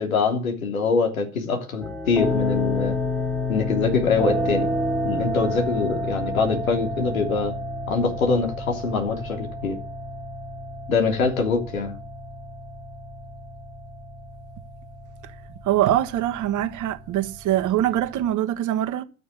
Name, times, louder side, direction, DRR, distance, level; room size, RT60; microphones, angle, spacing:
voice 1, 0.0-3.0 3.5-4.7 5.0-7.6 7.9-9.8 10.9-11.9, left 4 dB, 85° left, 3.3 m, -24 dB
sound 1, 1.8-18.3, left 1 dB, ahead, 2.1 m, -30 dB
voice 2, 15.6-19.0, right 12 dB, 45° right, 1.4 m, -23 dB
12.5 x 6.9 x 8.6 m
hypercardioid pair, 75°, 41 cm